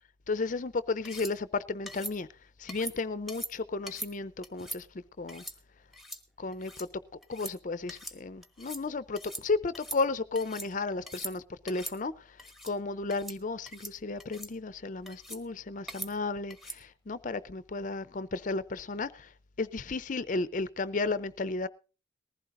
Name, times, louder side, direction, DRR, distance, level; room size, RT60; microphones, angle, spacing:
voice 1, 0.3-2.3 2.6-4.9 5.2-5.4 6.4-6.9 7.3-12.3 12.6-19.3 19.6-21.7, left 3 dB, 45° left, 0.6 m, -33 dB
sound 1, 1.1-1.3 1.9-2.2 2.7-3.0 3.3-3.5 3.9-4.1 4.4-4.8 5.3-5.6 5.9-6.2 6.5-6.9 7.2-7.6 7.9-8.2 8.4-8.8 9.2-9.5 9.7-10.7 11.0-11.3 11.7-12.0 12.4-12.7 13.1-13.4 13.7-13.9 14.2-14.5 15.1-15.4 15.9-16.1 16.5-16.8, right 1 dB, ahead, 1.3 m, -41 dB
19.5 x 15.0 x 2.6 m
head